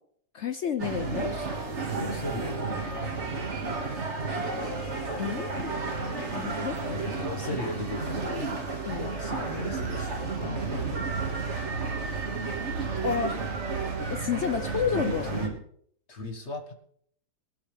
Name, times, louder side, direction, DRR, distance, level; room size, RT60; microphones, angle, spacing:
voice 1, 0.3-1.3 5.2-5.7 6.3-6.8 8.8-9.1 13.0-13.4 14.1-15.3, left 7 dB, 60° left, 10 dB, 0.8 m, -30 dB
sound 1, 0.8-15.5, right 4 dB, 45° right, 2.2 m, -32 dB
voice 2, 1.2-1.5 2.0-3.9 6.9-8.6 9.0-11.5 14.9-15.6 16.1-16.7, left 1 dB, 45° left, 4 dB, 1.8 m, -37 dB
sound 2, 4.2-11.0, left 3 dB, 85° left, 3.2 m, -46 dB
20.5 x 12.0 x 3.4 m, 0.65 s
omnidirectional pair, 1.8 m